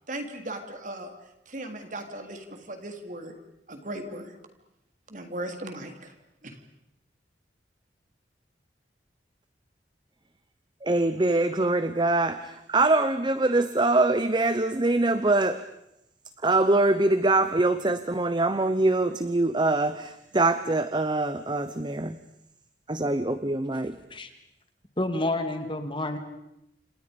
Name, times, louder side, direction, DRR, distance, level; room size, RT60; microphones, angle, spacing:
voice 1, 0.1-1.1 1.5-3.3 3.7-4.3 5.1-6.1 6.4-6.6, right 1 dB, 45° right, 5 dB, 3.5 m, -37 dB
voice 2, 10.8-15.6 16.4-22.2 22.9-24.0, right 2 dB, 25° right, 12 dB, 0.9 m, -24 dB
voice 3, 25.0-26.2, left 2 dB, 30° left, 7 dB, 2.3 m, -29 dB
29.5 x 27.5 x 5.3 m, 0.83 s
head